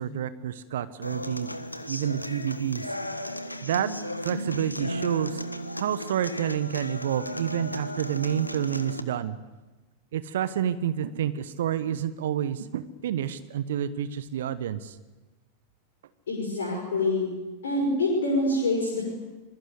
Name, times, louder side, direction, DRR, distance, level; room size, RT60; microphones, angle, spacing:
voice 1, 0.0-1.6 1.9-3.2 3.6-3.9 4.2-5.4 5.8-9.4 10.1-15.0, right 10 dB, 60° right, 14 dB, 1.1 m, -29 dB
Human voice / Acoustic guitar, 1.0-9.0, equal, 85° left, 1.3 m, -35 dB
voice 2, 16.3-17.2 17.6-19.1, left 2 dB, 65° left, -1 dB, 6.0 m, -26 dB
26.5 x 21.0 x 8.2 m, 1.2 s
figure-of-eight pair, 90°, 0 cm